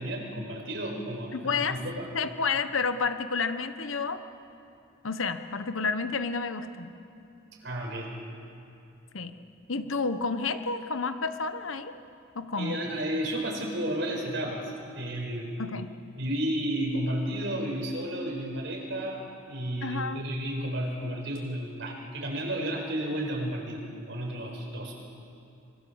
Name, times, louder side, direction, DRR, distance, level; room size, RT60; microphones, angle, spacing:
voice 1, 0.0-2.1 7.6-8.1 12.6-15.5 16.2-19.2 19.5-24.9, right 1 dB, 65° right, 0 dB, 5.1 m, -32 dB
voice 2, 1.3-4.2 5.0-6.9 9.1-9.3 9.7-12.0 12.3-12.7 15.6-15.9 19.8-20.2, left 4 dB, 80° left, 10 dB, 1.2 m, -30 dB
25.0 x 23.0 x 7.2 m, 2.7 s
head